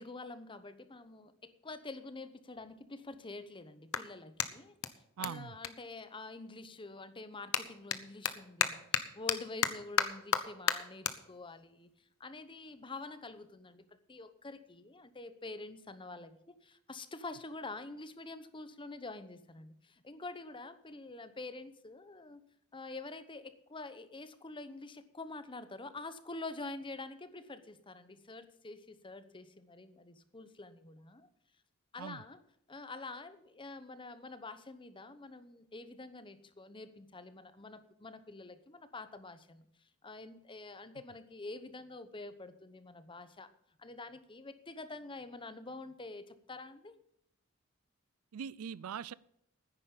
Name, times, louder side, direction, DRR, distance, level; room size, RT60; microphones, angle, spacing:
voice 1, 0.0-4.7 5.2-11.9 12.2-22.4 22.7-31.3 31.9-32.4 32.7-39.7 40.0-43.5 43.8-47.0, left 3 dB, 25° left, 12 dB, 0.9 m, -47 dB
Clapping, 1.8-1.9 2.5-6.6 6.9-13.5, left 8 dB, 70° left, 0.9 m, -37 dB
voice 2, 5.2-5.6 32.0-32.2 48.3-49.1, right 7 dB, 90° right, 21 dB, 0.4 m, -41 dB
9.9 x 9.8 x 7.1 m, 0.72 s
head